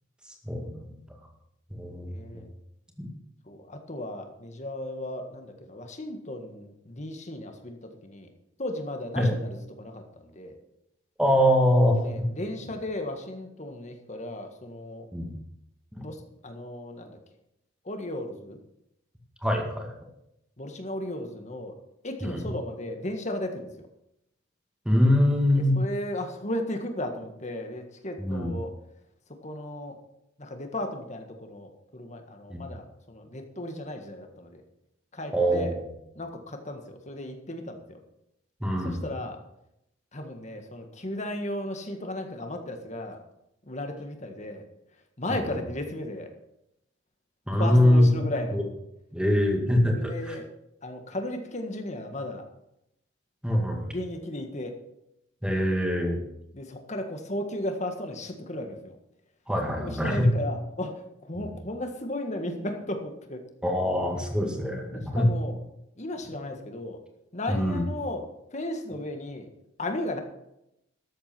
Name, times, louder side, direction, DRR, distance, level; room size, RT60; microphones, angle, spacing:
voice 1, 0.4-0.9 1.7-2.1 3.0-3.1 9.2-9.3 11.2-12.3 15.1-15.3 16.0-16.1 19.4-19.9 22.2-22.5 24.9-25.8 28.2-28.5 32.5-32.6 35.3-35.8 38.6-39.1 45.3-45.4 47.5-48.1 48.5-48.6 49.1-50.4 53.4-53.9 55.4-56.2 59.5-60.3 61.4-61.5 63.6-65.3 67.5-67.8, left 1 dB, 5° right, 1 dB, 2.0 m, -23 dB
voice 2, 2.1-2.5 3.5-8.3 8.6-10.6 11.9-15.1 16.0-17.2 17.9-18.6 20.6-21.7 22.0-23.9 25.5-28.7 29.4-30.0 30.4-34.6 35.1-35.7 36.2-38.0 38.8-39.4 40.1-43.2 43.7-44.6 45.2-46.3 47.6-48.6 49.9-50.4 50.8-52.5 53.9-54.8 56.5-59.0 59.8-63.4 64.9-65.6 66.0-67.0 67.3-69.5 69.8-70.2, left 1 dB, 35° left, 5 dB, 1.7 m, -35 dB
13.0 x 8.1 x 6.0 m, 0.82 s
head